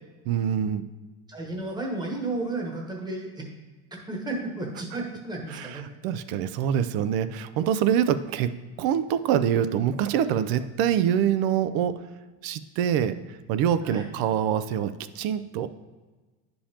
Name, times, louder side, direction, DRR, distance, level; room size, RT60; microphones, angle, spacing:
voice 1, 0.3-0.8 5.5-12.1 12.4-15.7, right 9 dB, 60° right, 13 dB, 0.5 m, -25 dB
voice 2, 1.3-3.5 3.9-5.9 13.8-14.1, right 2 dB, 10° right, 0 dB, 1.1 m, -33 dB
9.9 x 5.4 x 2.9 m, 1.3 s
cardioid pair, 135°, 42 cm